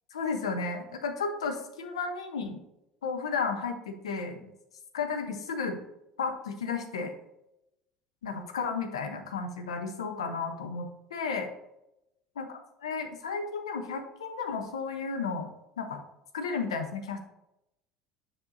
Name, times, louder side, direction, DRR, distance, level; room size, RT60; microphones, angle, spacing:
voice 1, 0.1-2.6 3.0-4.5 4.9-5.8 6.2-7.1 8.2-11.5 12.4-12.5 12.8-15.5 15.8-16.0 16.3-17.2, left 5 dB, 85° left, 6 dB, 0.8 m, -33 dB
7.2 x 5.3 x 2.6 m, 0.87 s
hypercardioid pair, 70°, 3 cm